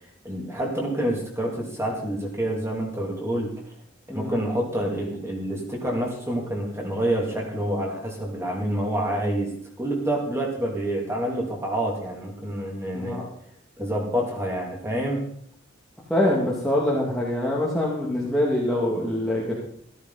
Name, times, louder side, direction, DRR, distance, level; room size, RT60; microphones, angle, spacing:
voice 1, 0.2-3.7 4.1-13.2 13.8-15.2, right 1 dB, 15° right, -1 dB, 2.9 m, -27 dB
voice 2, 16.1-19.6, left 1 dB, ahead, -5 dB, 2.2 m, -24 dB
14.0 x 13.5 x 4.2 m, 0.64 s
head